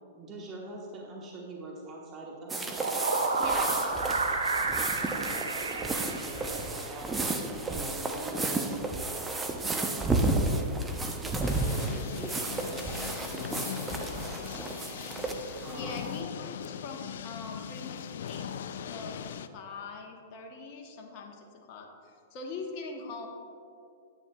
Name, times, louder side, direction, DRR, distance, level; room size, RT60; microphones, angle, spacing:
voice 1, 0.1-2.8 5.1-7.2 7.7-10.6 11.2-15.1 15.6-16.1, right 2 dB, 25° right, -2 dB, 1.2 m, -44 dB
sound 1, 2.5-16.1, right 2 dB, 10° right, 0.7 m, -32 dB
sound 2, 2.5-6.9, right 3 dB, 80° right, 0.7 m, -31 dB
voice 2, 3.4-4.0 15.7-19.2 19.5-23.3, left 3 dB, 40° left, 1 dB, 1.0 m, -42 dB
sound 3, 11.4-19.5, left 8 dB, 65° left, 0.3 m, -39 dB
9.7 x 8.8 x 2.3 m, 2.5 s
figure-of-eight pair, 105°, 0 cm